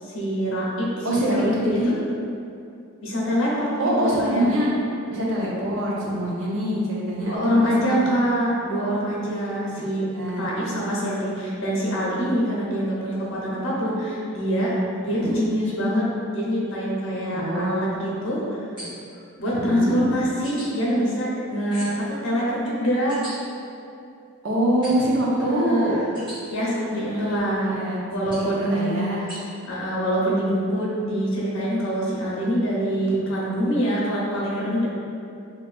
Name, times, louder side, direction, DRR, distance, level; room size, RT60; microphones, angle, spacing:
voice 1, 0.0-1.9 3.0-4.4 7.2-10.0 10.4-16.1 16.3-18.6 19.4-23.1 25.4-25.9 26.5-27.8 28.1-29.3 29.6-34.9, equal, 60° left, -5 dB, 0.8 m, -25 dB
voice 2, 1.0-1.9 3.8-4.7 5.1-8.0 10.1-10.4 15.1-15.3 17.3-17.8 18.1-18.5 19.5-20.0 24.4-25.9 26.9-28.0 28.4-29.2, right 1 dB, 60° right, -5 dB, 0.7 m, -25 dB
sound 1, 18.8-19.2 20.4-20.7 21.7-22.1 23.1-23.3 24.8-25.2 26.2-26.4 28.3-28.6 29.3-29.4, equal, 20° right, 1.1 m, -39 dB
3.4 x 3.1 x 2.4 m, 2.6 s
head